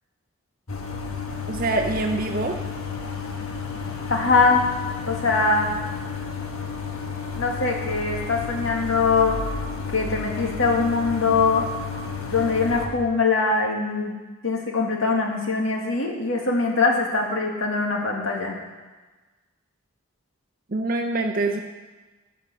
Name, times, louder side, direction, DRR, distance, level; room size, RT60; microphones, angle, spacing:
sound 1, 0.7-12.9, left 5 dB, 85° left, 1.3 m, -32 dB
voice 1, 1.5-2.6 20.7-21.6, right 2 dB, 40° right, 3 dB, 0.7 m, -25 dB
voice 2, 4.1-4.7 5.1-5.7 7.4-9.4 9.9-11.6 12.3-14.2 14.4-18.6, left 4 dB, 65° left, 0 dB, 1.9 m, -22 dB
15.0 x 5.2 x 6.7 m, 1.2 s
head